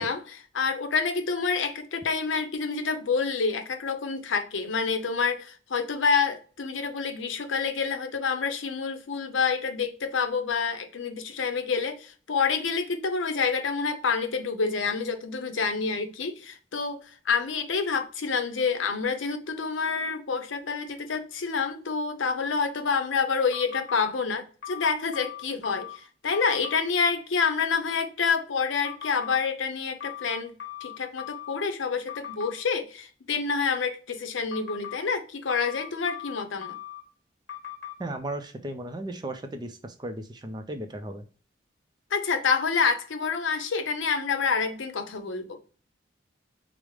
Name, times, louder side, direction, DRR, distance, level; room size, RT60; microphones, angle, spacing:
voice 1, 0.0-25.9 26.2-30.5 30.8-36.7 42.1-45.6, left 5 dB, 80° left, 0.6 m, -28 dB
sound 1, 23.5-24.0 24.6-26.0 26.3-26.8 28.8-29.4 30.0-31.6 32.1-32.5 34.5-35.0 35.5-37.0 37.5-37.9, left 12 dB, 65° left, 1.0 m, -39 dB
voice 2, 38.0-39.7 40.0-41.2, right 1 dB, 20° right, 0.4 m, -35 dB
4.8 x 2.0 x 3.1 m
head